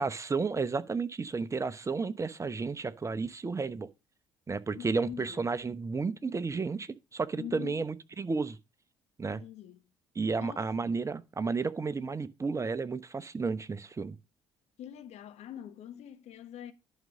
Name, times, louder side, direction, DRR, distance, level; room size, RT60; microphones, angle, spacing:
voice 1, 0.0-3.9 4.5-8.6 9.2-9.4 10.1-14.2, right 4 dB, 25° right, 1.0 m, -32 dB
voice 2, 4.7-5.4 7.4-7.8 9.3-9.8 10.3-10.9 14.8-16.7, left 10 dB, 55° left, 1.3 m, -44 dB
11.5 x 5.4 x 5.0 m
figure-of-eight pair, 55°, 13 cm